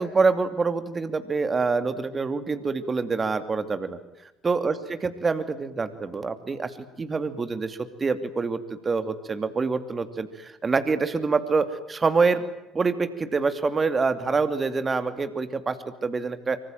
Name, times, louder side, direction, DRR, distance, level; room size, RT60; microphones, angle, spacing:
voice 1, 0.0-4.0 4.4-12.4 12.7-16.6, right 4 dB, 30° right, 10 dB, 2.7 m, -26 dB
25.5 x 25.0 x 9.2 m, 0.93 s
hypercardioid pair, 60°, 0 cm